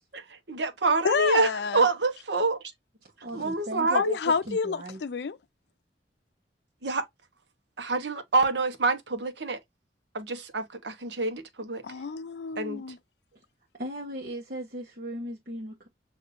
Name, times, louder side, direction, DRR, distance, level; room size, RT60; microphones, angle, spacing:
voice 1, 0.1-2.6 3.3-4.2 6.8-7.1 7.8-9.6 10.1-11.8 12.6-12.8, right 3 dB, 85° right, 1.0 m, -27 dB
voice 2, 1.0-1.8 3.9-5.4 11.8-13.0, left 5 dB, 70° left, 0.4 m, -28 dB
voice 3, 3.0-5.0 13.8-15.9, right 1 dB, 55° right, 1.1 m, -37 dB
6.8 x 2.7 x 2.6 m
head